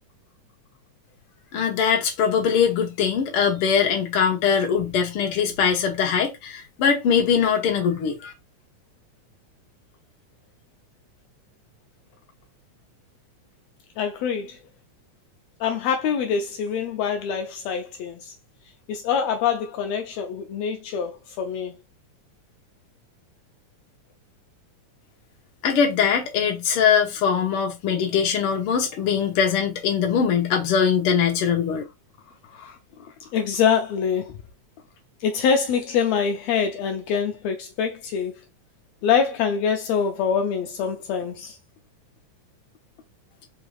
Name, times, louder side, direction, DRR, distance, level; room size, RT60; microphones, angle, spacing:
voice 1, 1.5-8.3 25.6-31.8, left 7 dB, 65° left, 1.5 m, -22 dB
voice 2, 14.0-14.6 15.6-18.3 18.9-21.7 32.4-34.4 35.2-38.4 39.0-41.6, left 7 dB, 85° left, 1.5 m, -25 dB
4.8 x 2.6 x 3.2 m
omnidirectional pair, 3.6 m